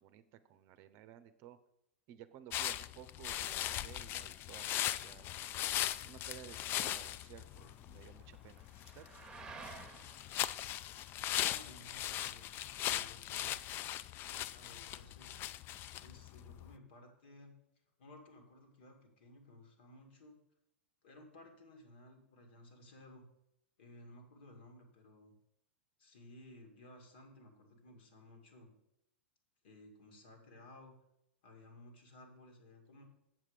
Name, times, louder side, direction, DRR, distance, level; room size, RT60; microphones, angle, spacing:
voice 1, 0.0-1.6 2.1-5.4 6.0-9.1, right 11 dB, 40° right, 12 dB, 0.7 m, -55 dB
sound 1, 2.5-16.7, left 13 dB, 35° left, 0.3 m, -39 dB
sound 2, 4.3-14.2, right 4 dB, 15° right, 1.2 m, -57 dB
voice 2, 11.5-12.5 12.9-13.6 14.2-15.4 16.0-17.5 18.0-20.4 21.0-23.3 23.8-25.3 26.0-28.7 29.6-31.0 31.4-33.0, left 1 dB, 60° left, 4 dB, 2.2 m, -57 dB
7.5 x 7.4 x 5.1 m, 0.81 s
figure-of-eight pair, 95°, 7 cm